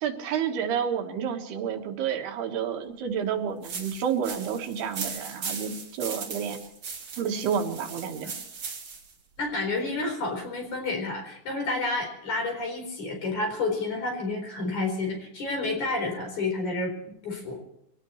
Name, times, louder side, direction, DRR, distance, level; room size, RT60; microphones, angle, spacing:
voice 1, 0.0-6.6 7.2-8.3, right 7 dB, 80° right, 4 dB, 3.6 m, -30 dB
sound 1, 3.6-9.1, right 5 dB, 40° right, 2.3 m, -38 dB
voice 2, 9.4-17.6, left 3 dB, 50° left, 2 dB, 5.6 m, -30 dB
25.0 x 18.0 x 3.2 m, 0.78 s
omnidirectional pair, 4.5 m